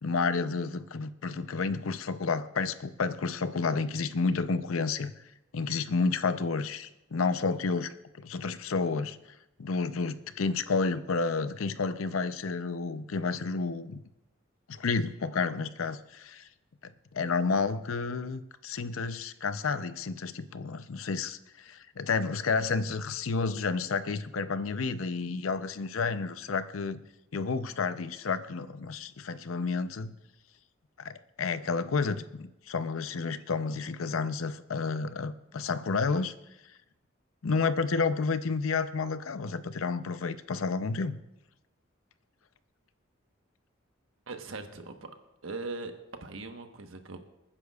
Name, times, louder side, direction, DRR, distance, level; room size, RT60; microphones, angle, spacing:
voice 1, 0.0-5.1 5.5-9.2 9.6-14.0 14.7-16.5 16.8-27.0 27.3-30.1 31.0-36.3 37.4-41.2, left 4 dB, 85° left, 13 dB, 0.6 m, -30 dB
voice 2, 44.3-45.1 45.4-45.9 46.2-47.2, right 3 dB, 75° right, 6 dB, 1.2 m, -40 dB
26.5 x 9.9 x 2.4 m, 0.92 s
head